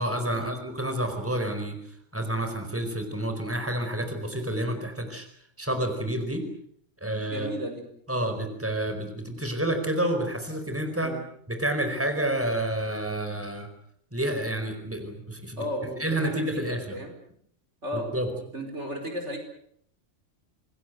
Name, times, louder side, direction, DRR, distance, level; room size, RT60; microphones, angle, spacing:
voice 1, 0.0-1.8 2.1-5.3 5.6-6.4 7.0-7.5 8.1-11.1 11.5-13.7 14.1-15.6 16.0-17.0 17.9-18.3, right 1 dB, 10° right, 5 dB, 4.6 m, -29 dB
voice 2, 7.3-7.8 11.0-11.2 15.6-17.2 17.8-18.1 18.5-19.4, equal, 65° right, 4 dB, 5.2 m, -34 dB
27.0 x 20.5 x 8.0 m, 0.67 s
omnidirectional pair, 1.3 m